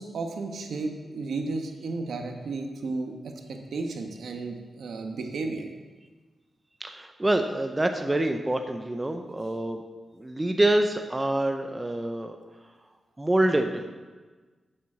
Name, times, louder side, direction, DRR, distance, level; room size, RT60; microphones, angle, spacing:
voice 1, 0.0-5.7, right 3 dB, 80° right, 3 dB, 1.2 m, -33 dB
voice 2, 6.8-9.8 10.2-12.4 13.2-13.9, right 1 dB, 20° right, 5 dB, 0.7 m, -26 dB
7.5 x 7.3 x 7.3 m, 1.3 s
cardioid pair, 85°, 0 cm